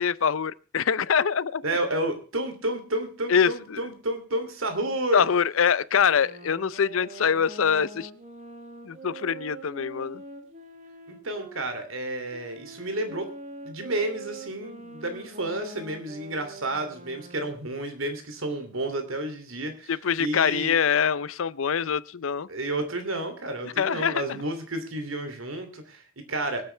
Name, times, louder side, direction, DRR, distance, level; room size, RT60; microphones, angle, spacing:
voice 1, 0.0-1.6 3.3-3.8 5.1-8.1 8.9-10.2 19.9-22.5 23.8-24.2, left 7 dB, 75° left, 0.5 m, -24 dB
voice 2, 1.6-5.3 11.1-13.3 13.6-20.7 22.5-26.6, right 1 dB, 75° right, 2.9 m, -31 dB
sound 1, 5.9-11.6 12.3-17.7, right 2 dB, 35° right, 2.1 m, -44 dB
24.0 x 8.7 x 3.4 m
head